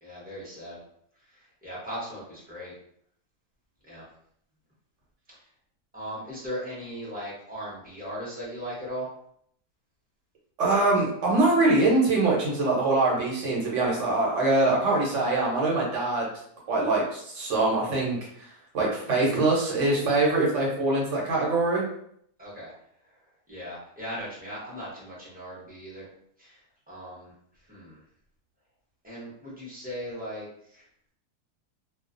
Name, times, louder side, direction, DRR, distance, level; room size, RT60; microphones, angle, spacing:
voice 1, 0.0-0.8 1.3-2.7 3.8-4.1 5.3-5.4 5.9-9.1 14.4-14.6 22.4-22.7 23.5-26.1 26.4-26.6 26.9-27.3 27.7-28.0 29.0-30.8, equal, 10° right, -8 dB, 0.7 m, -38 dB
voice 2, 10.6-16.3 16.7-18.2 18.7-21.8, right 2 dB, 55° right, -4 dB, 1.0 m, -23 dB
2.4 x 2.3 x 2.5 m, 0.67 s
omnidirectional pair, 1.7 m